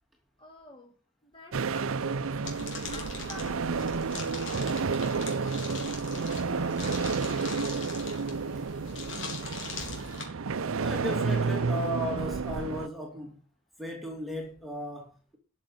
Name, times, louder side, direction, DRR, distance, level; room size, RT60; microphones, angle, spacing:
voice 1, 0.4-0.9 1.2-2.5 2.9-4.4 4.9-7.4 8.3-8.7, left 1 dB, 25° left, 2.8 m, -50 dB
sound 1, 1.5-12.9, right 4 dB, 85° right, 0.6 m, -31 dB
sound 2, 2.4-10.2, left 4 dB, 65° left, 3.6 m, -41 dB
voice 2, 10.8-13.4 13.8-15.4, left 1 dB, ahead, 2.5 m, -36 dB
13.0 x 6.6 x 7.5 m
head